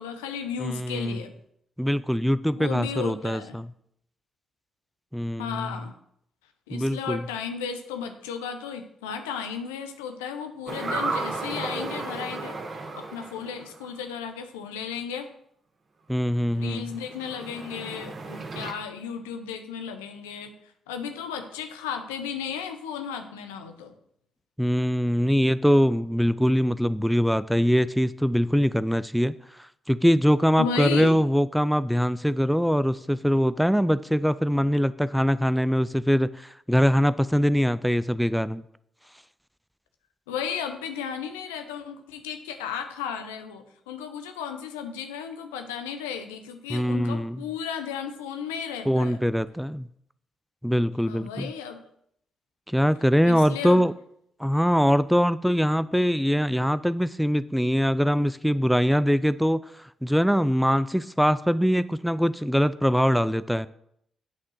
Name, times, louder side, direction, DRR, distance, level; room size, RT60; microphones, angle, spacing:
voice 1, 0.0-1.3 2.6-3.6 5.4-5.9 6.7-12.6 12.9-15.3 16.5-20.5 20.9-23.9 30.6-31.2 40.3-49.2 51.0-51.8 53.2-53.8, left 7 dB, 90° left, 7 dB, 0.6 m, -34 dB
voice 2, 0.6-1.2 1.8-3.7 5.1-5.7 6.7-7.2 16.1-16.9 24.6-38.6 46.7-47.4 48.9-49.9 50.6-51.5 52.7-53.9 54.4-63.7, equal, ahead, 16 dB, 0.4 m, -23 dB
sound 1, 10.7-14.0 16.7-18.7, right 3 dB, 45° right, 1.4 m, -34 dB
8.5 x 3.7 x 6.2 m, 0.72 s
hypercardioid pair, 45°, 0 cm